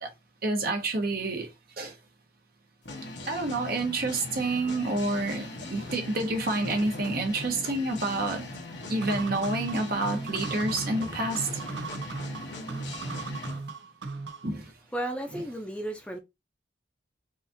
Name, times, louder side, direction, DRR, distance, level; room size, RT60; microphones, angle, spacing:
voice 1, 0.4-1.5 1.8-1.9 3.3-8.5 8.9-11.5 14.4-14.7, right 2 dB, 60° right, 1.1 m, -28 dB
sound 1, 2.9-13.6, left 2 dB, 85° left, 1.2 m, -40 dB
sound 2, 9.0-14.6, right 3 dB, 90° right, 0.6 m, -37 dB
voice 2, 14.9-16.2, right 1 dB, 5° left, 0.7 m, -33 dB
4.9 x 2.7 x 2.7 m
head